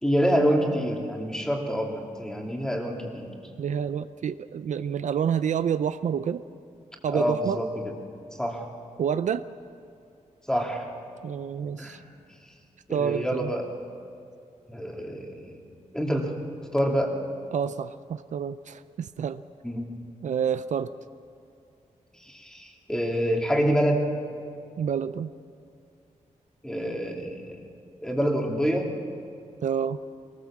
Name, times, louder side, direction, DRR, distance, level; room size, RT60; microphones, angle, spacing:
voice 1, 0.0-3.3 7.1-7.9 8.4-8.7 10.5-10.9 11.8-12.0 12.9-13.7 14.7-15.6 15.9-16.3 16.7-17.1 19.6-19.9 22.2-24.0 26.6-27.6 28.0-28.9, equal, 5° left, 0 dB, 2.5 m, -27 dB
voice 2, 3.6-6.4 7.0-7.6 9.0-9.5 11.2-12.0 12.9-13.5 17.5-19.4 20.2-20.9 24.8-25.3 29.6-30.0, right 8 dB, 70° right, 12 dB, 0.5 m, -28 dB
24.0 x 19.0 x 7.4 m, 2.5 s
wide cardioid pair, 150°, 13 cm